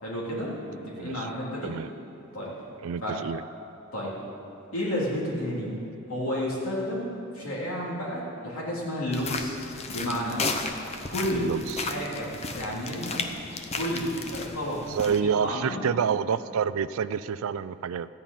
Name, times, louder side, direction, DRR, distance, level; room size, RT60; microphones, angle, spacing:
voice 1, 0.0-1.7 2.3-2.5 3.0-3.2 3.9-4.1 4.7-5.7 6.1-7.1 7.3-9.6 9.9-10.4 11.1-11.5 11.8-13.2 13.7-15.9, equal, 70° left, -5 dB, 3.3 m, -31 dB
voice 2, 2.8-3.4 11.3-11.9 14.9-18.1, right 7 dB, 65° right, 15 dB, 0.3 m, -28 dB
sound 1, 9.1-15.2, left 3 dB, 30° left, 0.7 m, -34 dB
14.0 x 5.7 x 8.9 m, 2.8 s
head